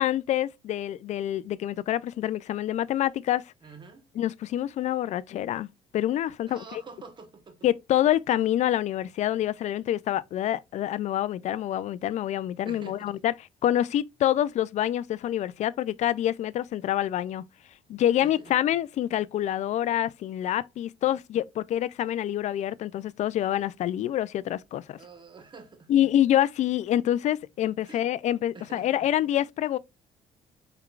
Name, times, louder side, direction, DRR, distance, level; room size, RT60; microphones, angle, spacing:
voice 1, 0.0-3.4 4.2-5.7 5.9-6.6 7.6-13.3 13.6-17.4 17.9-25.0 25.9-29.8, left 12 dB, 55° left, 0.4 m, -26 dB
voice 2, 3.6-4.0 6.5-7.6 12.6-13.2 18.2-18.6 25.0-26.1 27.8-28.1 28.5-29.1, right 4 dB, 35° right, 1.2 m, -47 dB
4.5 x 3.7 x 2.4 m
cardioid pair, 100°, 14 cm